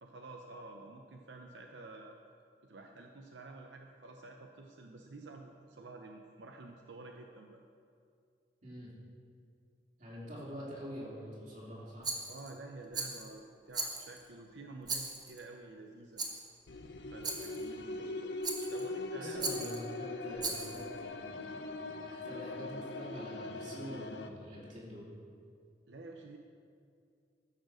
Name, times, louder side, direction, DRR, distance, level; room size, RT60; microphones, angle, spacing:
voice 1, 0.0-2.2 2.6-7.6 12.3-16.2 17.1-18.3 18.7-19.5 25.9-26.4, right 2 dB, 85° right, 2 dB, 0.8 m, -50 dB
voice 2, 10.0-12.1 19.1-25.1, equal, 45° right, -6 dB, 3.4 m, -46 dB
Rattle, 12.0-12.5 12.9-13.3 13.7-14.3 14.8-15.4 16.2-16.5 17.2-17.6 18.4-18.9 19.4-19.8 20.4-20.8, right 3 dB, 20° right, 1.2 m, -38 dB
sound 1, 16.7-24.3, left 2 dB, 75° left, 0.7 m, -41 dB
15.0 x 6.7 x 6.3 m, 2.3 s
head